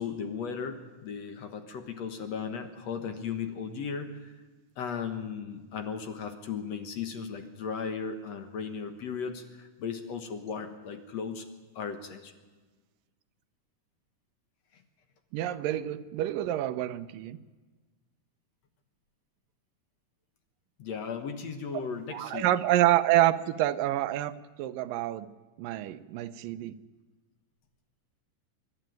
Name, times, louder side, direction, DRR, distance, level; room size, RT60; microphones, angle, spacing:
voice 1, 0.0-4.3 4.8-11.5 11.8-12.3 14.7-14.8 20.8-22.5, left 6 dB, 60° left, 7 dB, 2.2 m, -36 dB
voice 2, 15.3-17.4 22.1-25.3 25.6-26.8, right 14 dB, 85° right, 13 dB, 2.4 m, -27 dB
25.0 x 11.5 x 9.2 m, 1.3 s
omnidirectional pair, 3.9 m